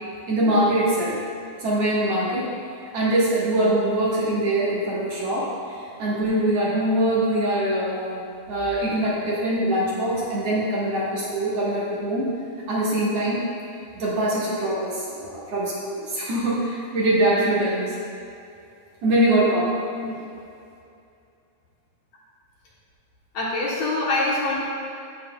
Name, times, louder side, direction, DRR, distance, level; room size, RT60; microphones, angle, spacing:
voice 1, 0.3-1.2 1.6-2.5 2.9-8.2 8.5-12.3 12.7-13.5 14.0-17.9 19.0-19.8, right 1 dB, 60° right, -6 dB, 2.3 m, -23 dB
voice 2, 23.3-24.6, left 2 dB, 65° left, -6 dB, 2.0 m, -24 dB
14.5 x 6.0 x 2.3 m, 2.5 s
omnidirectional pair, 3.4 m